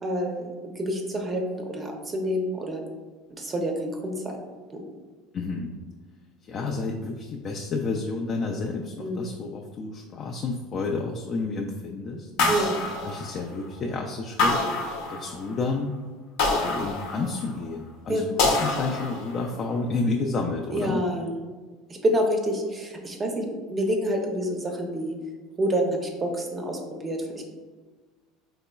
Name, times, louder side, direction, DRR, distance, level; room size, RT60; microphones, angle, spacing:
voice 1, 0.0-2.8 3.3-4.4 4.7-4.8 9.0-9.3 12.4-12.7 18.1-18.2 20.7-21.3 21.9-25.2 25.6-27.4, equal, 20° right, 2 dB, 0.5 m, -28 dB
voice 2, 5.3-5.7 6.4-12.3 13.0-14.6 15.1-15.9 16.5-21.0, left 3 dB, 35° left, 1 dB, 0.3 m, -30 dB
sound 1, 12.4-13.7 14.4-15.6 16.4-17.6 18.4-19.6, left 3 dB, 70° left, 0.7 m, -26 dB
4.1 x 2.9 x 2.2 m, 1.3 s
supercardioid pair, 125°, 0 cm